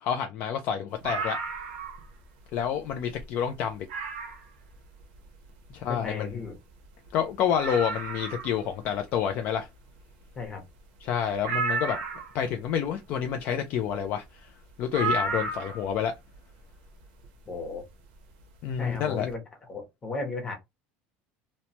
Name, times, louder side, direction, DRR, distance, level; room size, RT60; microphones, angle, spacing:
voice 1, 0.0-1.4 2.5-3.9 5.7-6.4 7.1-9.7 11.0-12.0 12.3-14.5 14.8-16.1 18.6-19.3, left 8 dB, 40° left, 0.3 m, -28 dB
sound 1, 1.0-2.1 2.5-2.6 3.1-3.2 3.9-4.5 6.3-6.4 6.5-6.6 7.1-7.2 7.6-8.6 11.4-12.4 14.9-15.9 17.2-17.3, right 3 dB, 80° right, 0.7 m, -32 dB
voice 2, 5.9-6.5 10.3-10.6 17.5-17.8 18.8-19.4 19.7-20.5, left 3 dB, 15° left, 0.8 m, -35 dB
3.0 x 2.1 x 2.7 m
cardioid pair, 170°, 4 cm